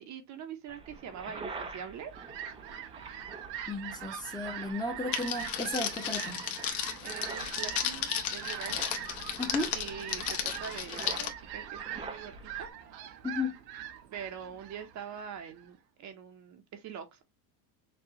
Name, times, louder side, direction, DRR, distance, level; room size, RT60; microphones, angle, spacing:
voice 1, 0.0-2.1 7.0-8.9 9.7-12.7 14.1-17.2, right 8 dB, 35° right, 0.8 m, -43 dB
sound 1, 0.7-12.7, right 3 dB, 10° right, 0.4 m, -46 dB
Fowl, 1.7-15.7, right 10 dB, 90° right, 1.0 m, -43 dB
voice 2, 3.7-6.4 9.4-9.7 13.2-13.5, left 2 dB, 10° left, 0.8 m, -34 dB
Crackle, 5.1-11.3, left 9 dB, 55° left, 1.2 m, -34 dB
6.1 x 2.3 x 2.9 m
supercardioid pair, 130°, 49 cm